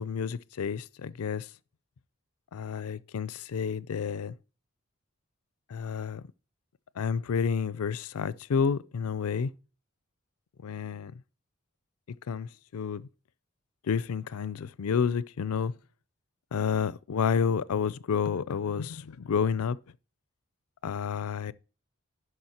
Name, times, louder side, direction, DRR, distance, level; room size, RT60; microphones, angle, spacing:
voice 1, 0.0-1.5 2.5-4.3 5.7-6.2 7.0-9.5 10.6-11.2 12.3-13.1 13.9-15.7 16.5-19.8 20.8-21.5, left 6 dB, 85° left, 0.4 m, -30 dB
12.0 x 4.8 x 2.9 m
head